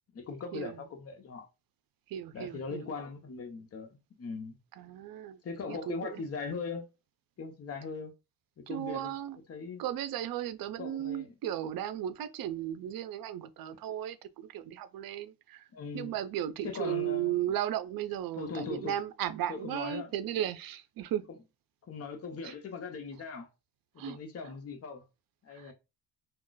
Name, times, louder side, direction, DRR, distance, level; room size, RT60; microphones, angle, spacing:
voice 1, 0.1-1.5 2.3-4.6 5.4-6.9 7.4-8.1 8.6-9.1 9.5-9.8 10.8-11.4 15.7-16.2 16.6-17.4 18.3-19.0 19.5-20.1 21.3-21.4 21.9-23.5 23.9-25.0 25.4-25.7, left 4 dB, 40° left, 0.8 m, -40 dB
voice 2, 2.1-2.8 4.8-5.4 5.7-6.2 8.7-9.4 9.8-15.6 15.9-21.2 22.4-22.5 24.0-24.2 25.5-25.7, right 11 dB, 70° right, 0.5 m, -35 dB
2.4 x 2.3 x 3.8 m
cardioid pair, 105°, 37 cm